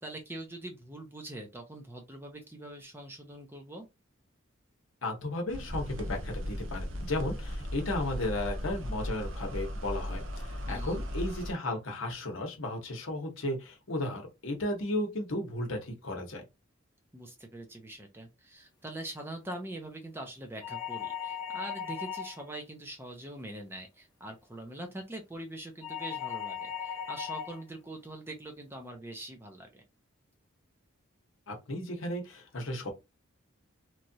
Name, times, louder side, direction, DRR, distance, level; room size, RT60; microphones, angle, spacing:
voice 1, 0.0-3.9 10.7-11.0 17.1-29.8, right 1 dB, 10° right, 0.5 m, -43 dB
voice 2, 5.0-16.4 31.5-32.9, left 1 dB, 65° left, 0.9 m, -34 dB
sound 1, 5.5-11.5, equal, 60° right, 0.6 m, -36 dB
sound 2, 20.6-22.5 25.8-27.6, left 8 dB, 20° left, 0.9 m, -37 dB
3.0 x 2.4 x 2.7 m
head